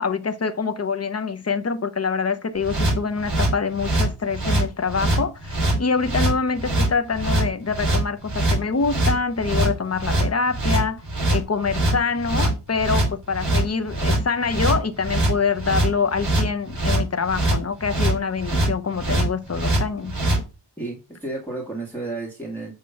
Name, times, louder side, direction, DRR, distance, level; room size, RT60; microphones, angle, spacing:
voice 1, 0.0-11.0 11.3-20.2, left 5 dB, 35° left, 0.7 m, -25 dB
sound 1, 2.6-20.4, right 1 dB, 40° right, 2.9 m, -23 dB
voice 2, 20.8-22.7, right 2 dB, 5° left, 1.8 m, -32 dB
8.4 x 2.9 x 5.8 m
wide cardioid pair, 130°, 45 cm